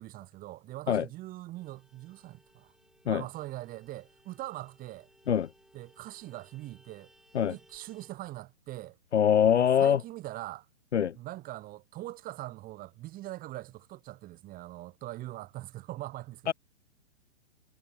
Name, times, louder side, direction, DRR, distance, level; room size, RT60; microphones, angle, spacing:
voice 1, 0.0-2.7 3.0-5.1 5.7-7.1 7.5-9.0 9.5-10.7 11.2-16.5, right 16 dB, 25° right, 4.1 m, -42 dB
Vehicle horn car horn honking, 1.5-8.1, right 1 dB, ahead, 4.4 m, -63 dB
voice 2, 9.1-10.0 10.9-11.1 16.5-16.6, left 9 dB, 80° left, 0.6 m, -23 dB
figure-of-eight pair, 120°, 34 cm